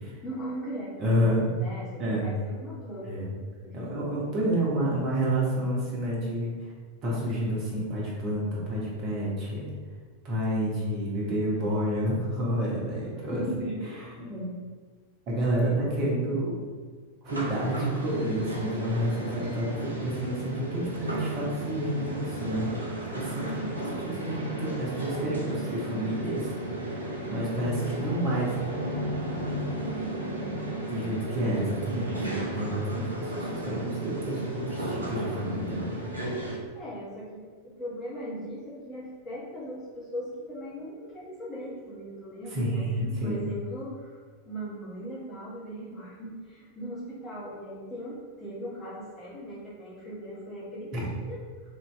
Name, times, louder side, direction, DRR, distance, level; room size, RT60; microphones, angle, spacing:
voice 1, 0.2-3.9 13.1-14.3 15.7-15.8 23.4-24.0 29.8-31.2 36.7-42.8 43.2-51.4, equal, 20° left, -8 dB, 1.3 m, -39 dB
voice 2, 1.0-1.5 2.0-2.3 3.1-3.3 3.7-6.7 7.0-9.7 10.2-13.4 14.2-14.5 15.3-16.6 17.2-22.7 23.1-23.4 24.0-28.5 30.2-30.4 30.9-36.0 42.5-43.4 50.9-51.0, right 1 dB, 35° right, -5 dB, 1.2 m, -29 dB
sound 1, 17.3-36.6, right 1 dB, 80° right, 0.6 m, -34 dB
3.2 x 2.8 x 3.4 m, 1.6 s
figure-of-eight pair, 90°, 0 cm